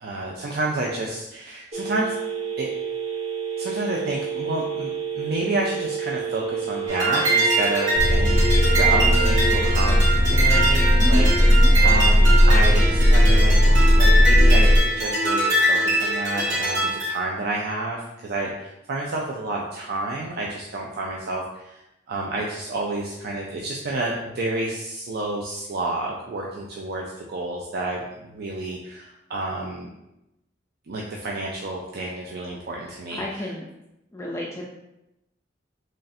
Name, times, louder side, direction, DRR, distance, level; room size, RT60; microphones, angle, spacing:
voice 1, 0.0-2.2 2.6-2.7 3.6-11.3 11.8-21.8 22.1-29.9 30.9-33.2, right 2 dB, 55° right, -2 dB, 0.4 m, -30 dB
Telephone, 1.7-9.7, right 6 dB, 35° right, 1.0 m, -30 dB
sound 1, 6.9-17.1, right 2 dB, 70° right, 1.4 m, -23 dB
sound 2, 8.0-14.8, equal, 40° left, 0.8 m, -17 dB
voice 2, 11.0-11.8 33.1-33.6 34.1-34.6, left 1 dB, 15° left, -3 dB, 0.3 m, -30 dB
3.2 x 2.4 x 4.1 m, 0.89 s
head